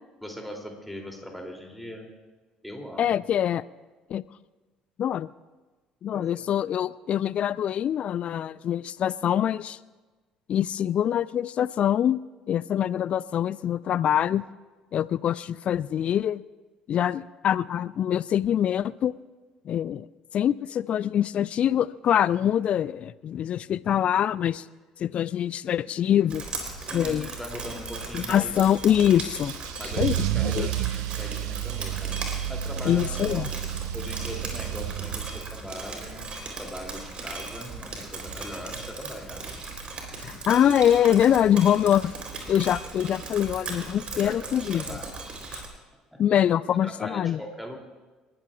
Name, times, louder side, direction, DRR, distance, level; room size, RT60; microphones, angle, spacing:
voice 1, 0.2-2.1 2.6-3.2 6.1-6.4 26.8-28.5 29.8-32.2 32.5-33.1 33.9-36.3 36.6-39.5 44.1-45.2 45.5-45.6 46.1-46.2 46.8-47.8, equal, ahead, 1 dB, 3.0 m, -40 dB
voice 2, 3.0-3.6 4.1-4.2 5.0-5.3 6.0-9.8 10.5-12.2 12.5-14.4 14.9-16.4 16.9-19.1 19.7-20.1 20.3-24.6 25.0-26.4 26.9-27.3 28.1-29.5 30.0-30.2 30.4-30.7 32.8-33.5 40.2-42.1 42.5-45.0 45.5-45.6 46.2-47.4, left 10 dB, 45° left, 20 dB, 0.4 m, -24 dB
Drip, 26.3-45.7, right 3 dB, 35° right, 3.6 m, -38 dB
Car / Engine starting / Accelerating revving vroom, 29.2-35.7, right 12 dB, 65° right, 0.4 m, -31 dB
29.5 x 13.5 x 2.4 m, 1.3 s
figure-of-eight pair, 55°, 3 cm